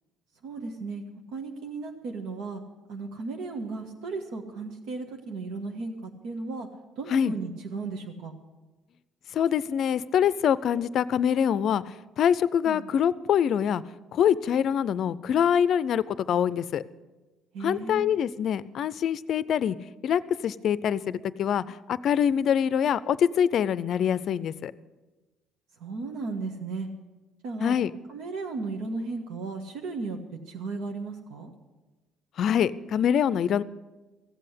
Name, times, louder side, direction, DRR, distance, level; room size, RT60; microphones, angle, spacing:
voice 1, 0.4-2.6 2.9-6.7 7.0-8.3 12.6-12.8 17.5-18.1 25.8-26.9 27.4-27.8 28.1-30.2 30.5-31.5, right 3 dB, 80° right, 2 dB, 1.5 m, -35 dB
voice 2, 9.3-13.8 14.1-16.8 17.6-19.8 20.0-24.7 27.6-27.9 32.4-33.6, left 8 dB, 50° left, 17 dB, 0.5 m, -25 dB
15.5 x 7.8 x 8.3 m, 1.2 s
cardioid pair, 140°, 0 cm